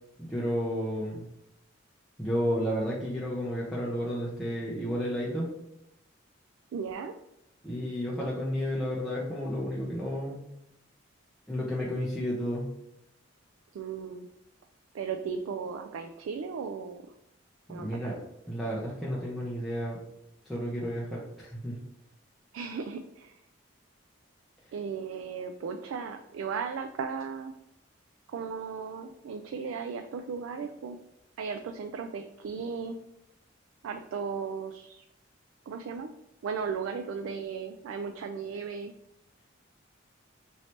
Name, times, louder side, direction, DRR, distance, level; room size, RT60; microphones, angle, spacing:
voice 1, 0.2-1.3 2.2-5.5 7.6-10.4 11.5-12.7 17.8-18.2 18.5-20.0 20.5-21.8, equal, ahead, -7 dB, 0.6 m, -32 dB
voice 2, 6.7-7.1 13.7-14.3 14.9-17.0 17.7-18.0 22.5-23.3 24.7-27.5 28.3-31.0 31.4-33.0 33.8-35.0 35.7-36.1 36.4-38.9, right 6 dB, 90° right, 7 dB, 0.3 m, -36 dB
3.1 x 2.8 x 4.2 m, 0.84 s
head